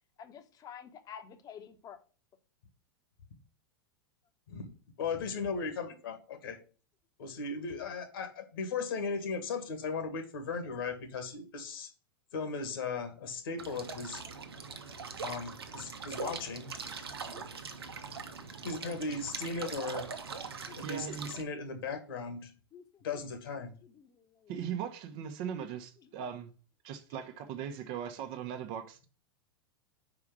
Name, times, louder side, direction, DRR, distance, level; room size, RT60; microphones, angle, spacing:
voice 1, 0.2-2.0 16.8-17.0 17.3-17.8 20.7-20.8 21.5-21.7 22.7-23.0 23.8-24.6, left 8 dB, 30° left, 1.1 m, -50 dB
voice 2, 5.0-6.6 7.2-11.9 12.3-14.2 15.2-16.7 18.6-20.1 20.8-22.5 23.0-23.7, left 4 dB, 65° left, 1.8 m, -37 dB
sound 1, 13.6-21.4, right 5 dB, 80° right, 1.0 m, -42 dB
voice 3, 20.8-21.3 24.5-26.5 26.8-29.0, right 8 dB, 45° right, 1.0 m, -39 dB
4.9 x 4.8 x 6.1 m
figure-of-eight pair, 95°, 13 cm